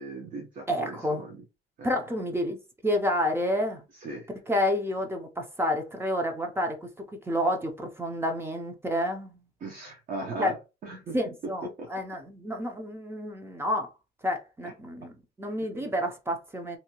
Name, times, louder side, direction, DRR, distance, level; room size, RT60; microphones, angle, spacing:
voice 1, 0.0-1.4 1.8-1.9 4.0-4.3 9.6-10.6 10.8-11.2 11.8-11.9 15.8-15.9, right 2 dB, 45° right, 0.7 m, -38 dB
voice 2, 0.7-1.2 1.8-3.8 4.5-9.4 10.4-10.5 10.9-13.9 14.2-15.1 15.4-16.8, left 1 dB, 10° right, 0.5 m, -29 dB
2.7 x 2.2 x 2.8 m
cardioid pair, 155°, 19 cm